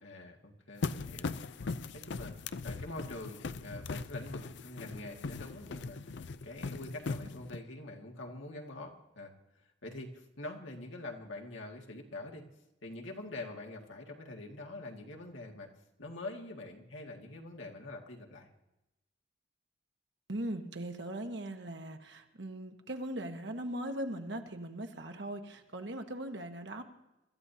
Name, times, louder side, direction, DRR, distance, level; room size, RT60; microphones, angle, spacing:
voice 1, 0.0-1.6 1.9-9.3 9.8-12.4 12.8-15.7 16.0-18.5, left 2 dB, 85° left, 1 dB, 2.0 m, -45 dB
sound 1, 0.8-7.6, left 4 dB, 65° left, 0.5 m, -39 dB
voice 2, 20.3-26.8, right 1 dB, 65° right, 5 dB, 1.4 m, -39 dB
24.5 x 14.0 x 2.8 m, 0.93 s
head